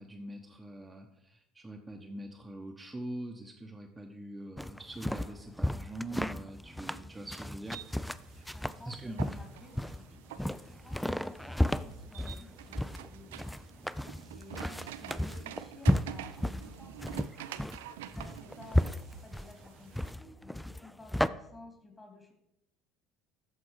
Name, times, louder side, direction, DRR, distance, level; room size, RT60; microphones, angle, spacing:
voice 1, 0.0-7.8 8.8-9.4 14.6-14.7, right 1 dB, 15° right, 2 dB, 0.9 m, -43 dB
sound 1, 4.6-21.3, left 1 dB, 5° left, 0.4 m, -33 dB
sound 2, 7.6-20.1, right 12 dB, 75° right, 0.4 m, -48 dB
voice 2, 8.2-13.9 14.4-17.1 17.6-22.3, left 3 dB, 20° left, 5 dB, 2.2 m, -54 dB
13.0 x 4.4 x 4.9 m, 0.81 s
hypercardioid pair, 65°, 0 cm